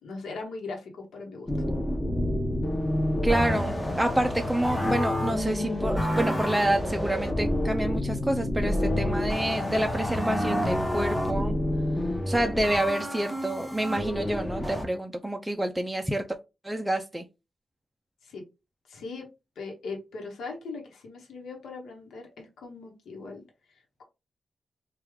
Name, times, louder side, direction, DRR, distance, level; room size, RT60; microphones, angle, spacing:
voice 1, 0.0-1.5 18.2-18.4 18.9-19.3 19.6-23.4, left 3 dB, 85° left, 1.0 m, -39 dB
sound 1, 1.5-14.8, left 1 dB, 10° left, 0.8 m, -28 dB
voice 2, 3.2-11.6 12.3-16.3 16.6-17.2, right 1 dB, 5° right, 0.4 m, -28 dB
3.1 x 2.3 x 3.5 m
cardioid pair, 95°, 0 cm